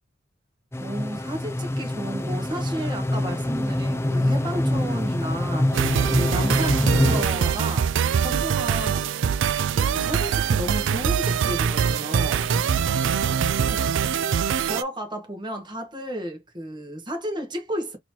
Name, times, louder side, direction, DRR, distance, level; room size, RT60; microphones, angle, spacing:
sound 1, 0.7-7.2, left 1 dB, 15° left, 0.5 m, -25 dB
voice 1, 0.8-9.1 9.7-12.5 13.7-13.8 14.6-18.0, equal, 25° right, 1.3 m, -33 dB
sound 2, 5.7-14.8, right 7 dB, 70° right, 0.4 m, -23 dB
4.1 x 2.9 x 2.8 m
head